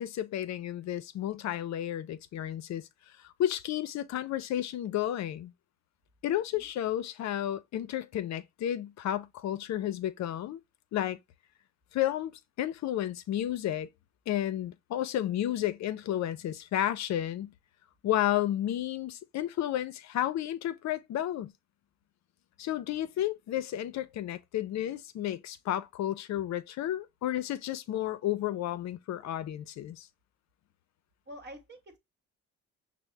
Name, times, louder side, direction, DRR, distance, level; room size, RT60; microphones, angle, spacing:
voice 1, 0.0-2.9 3.2-5.5 6.2-10.6 10.9-11.2 11.9-12.3 12.6-13.9 14.3-17.5 18.0-21.5 22.6-30.1, left 12 dB, 65° left, 0.5 m, -32 dB
voice 2, 31.3-32.0, equal, 35° right, 1.1 m, -47 dB
5.9 x 2.0 x 3.2 m
cardioid pair, 90°, 30 cm